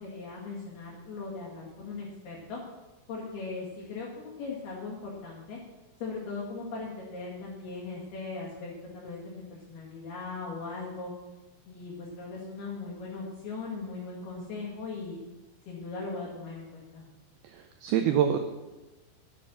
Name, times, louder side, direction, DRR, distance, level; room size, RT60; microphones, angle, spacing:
voice 1, 0.0-2.6 3.1-5.6 6.0-11.1 11.7-15.2 15.7-17.0, left 3 dB, 60° left, -6 dB, 3.9 m, -39 dB
voice 2, 17.4-18.4, right 9 dB, 85° right, 6 dB, 2.2 m, -26 dB
11.0 x 10.5 x 6.2 m, 1.1 s
omnidirectional pair, 5.4 m